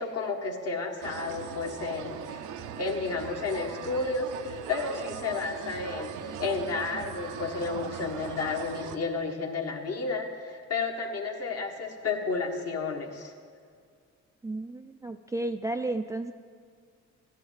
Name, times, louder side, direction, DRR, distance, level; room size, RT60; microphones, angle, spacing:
voice 1, 0.0-2.4 2.8-6.1 6.4-13.3, left 4 dB, 55° left, 2 dB, 1.5 m, -32 dB
sound 1, 1.0-9.0, right 8 dB, 85° right, 0.7 m, -40 dB
voice 2, 14.4-16.3, right 2 dB, 10° right, 7 dB, 0.3 m, -32 dB
15.0 x 10.0 x 4.0 m, 2.1 s
cardioid pair, 90°, 30 cm